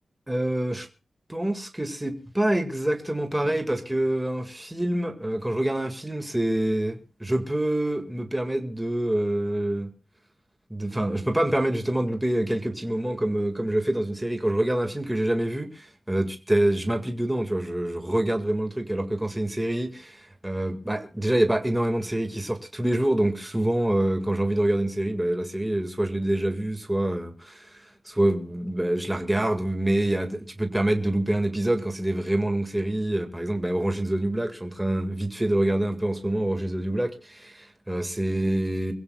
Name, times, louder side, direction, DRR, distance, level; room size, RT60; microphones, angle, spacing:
voice 1, 0.3-0.9 1.3-9.9 10.7-38.9, right 1 dB, 10° right, 1.8 m, -26 dB
25.0 x 16.0 x 2.3 m
wide cardioid pair, 180°, 0 cm